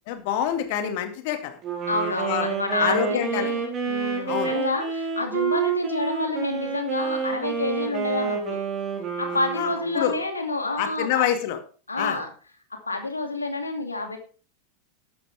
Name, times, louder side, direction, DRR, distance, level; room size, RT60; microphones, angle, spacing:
voice 1, 0.1-1.6 2.1-2.5 2.8-3.5 4.3-4.5 9.5-9.7 9.9-10.1 10.8-11.6 12.0-12.2, left 10 dB, 50° left, 7 dB, 2.2 m, -26 dB
Wind instrument woodwind instrument, 1.6-10.3, right 6 dB, 30° right, 4.5 m, -29 dB
voice 2, 1.9-8.6 9.2-11.3 11.9-12.3 12.7-14.2, left 2 dB, 80° left, 5 dB, 2.6 m, -28 dB
13.5 x 11.5 x 3.6 m, 0.38 s
figure-of-eight pair, 90°, 0 cm